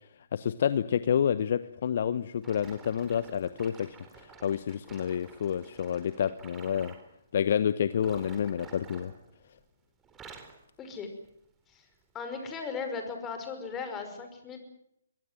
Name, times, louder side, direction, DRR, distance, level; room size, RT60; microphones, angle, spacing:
voice 1, 0.3-3.9 4.1-6.9 7.3-9.1, left 8 dB, 50° left, 14 dB, 0.9 m, -29 dB
sound 1, 2.4-7.1 7.9-9.7 10.0-10.6 11.2-11.5 12.1-12.2, right 5 dB, 15° right, 4.1 m, -51 dB
voice 2, 10.8-11.1 11.7-11.9 12.1-14.6, left 5 dB, 15° left, 6 dB, 5.5 m, -37 dB
23.0 x 22.0 x 7.7 m, 0.73 s
figure-of-eight pair, 135°, 0 cm